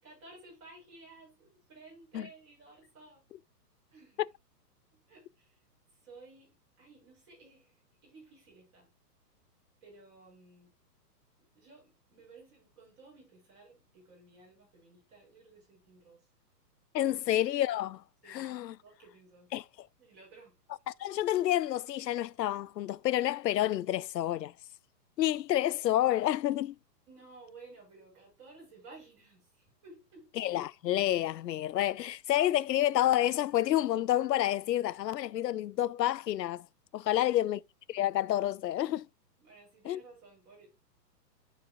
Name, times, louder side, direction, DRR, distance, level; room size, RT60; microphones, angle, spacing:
voice 1, 0.0-3.2 3.9-4.2 4.9-5.6 5.9-8.9 9.8-10.7 11.4-16.3 17.1-17.2 18.2-18.5 18.8-19.5 20.0-20.6 27.1-30.3 37.0-37.5 39.4-40.7, right 3 dB, 20° right, 5.8 m, -55 dB
voice 2, 16.9-18.0 18.3-18.7 19.5-19.6 20.9-24.5 25.2-26.7 30.4-36.7 36.9-37.6 37.9-39.1 39.9-40.0, left 13 dB, 85° left, 0.6 m, -29 dB
14.5 x 5.0 x 2.3 m
hypercardioid pair, 175°, 48 cm